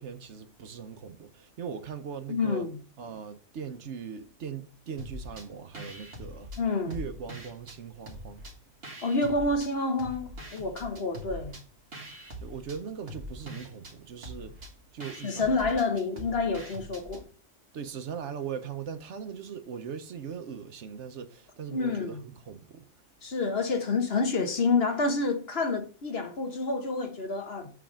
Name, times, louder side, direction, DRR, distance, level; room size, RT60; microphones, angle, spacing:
voice 1, 0.0-2.7 3.0-6.5 6.9-8.4 12.4-15.8 17.7-22.9, right 7 dB, 70° right, 1.1 m, -40 dB
voice 2, 2.3-2.8 6.6-7.0 9.0-11.6 15.2-17.2 21.7-22.2 23.2-27.7, left 3 dB, 55° left, 1.3 m, -28 dB
sound 1, 5.0-5.5 5.7-7.8 8.1-9.7 10.0-17.2, equal, 50° right, 1.9 m, -43 dB
8.1 x 3.5 x 6.2 m
omnidirectional pair, 1.3 m